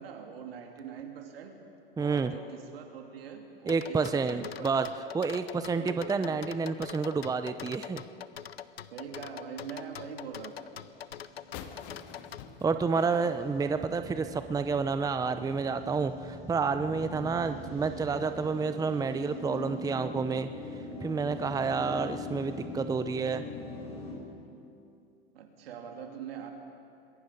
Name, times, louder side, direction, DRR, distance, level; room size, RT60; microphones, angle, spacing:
voice 1, 0.0-1.5 2.0-4.7 5.5-6.4 8.9-10.7 12.9-13.3 25.3-26.5, right 6 dB, 75° right, 3 dB, 3.1 m, -43 dB
voice 2, 2.0-2.3 3.7-4.9 5.1-8.0 12.6-20.5 21.0-23.4, right 5 dB, 10° right, 10 dB, 0.8 m, -29 dB
sound 1, 3.7-12.4, left 9 dB, 85° left, 0.7 m, -43 dB
sound 2, 10.9-24.2, left 2 dB, 20° left, 7.3 m, -43 dB
sound 3, 11.5-14.3, left 8 dB, 50° left, 1.9 m, -47 dB
27.0 x 21.5 x 5.3 m, 2.6 s
hypercardioid pair, 95°, 30 cm